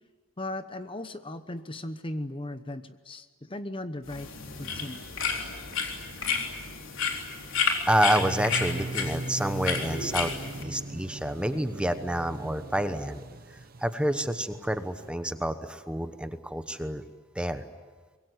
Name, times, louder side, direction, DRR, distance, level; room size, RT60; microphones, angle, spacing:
voice 1, 0.4-4.3 4.6-5.0, left 1 dB, 25° left, 10 dB, 0.9 m, -37 dB
sound 1, 4.1-10.6, left 5 dB, 70° left, 3.7 m, -31 dB
voice 2, 7.9-13.2 13.8-17.0 17.3-17.6, right 1 dB, 5° right, 9 dB, 1.0 m, -28 dB
sound 2, 8.2-15.1, right 2 dB, 45° right, 1.0 m, -38 dB
25.0 x 22.0 x 9.6 m, 1.4 s
head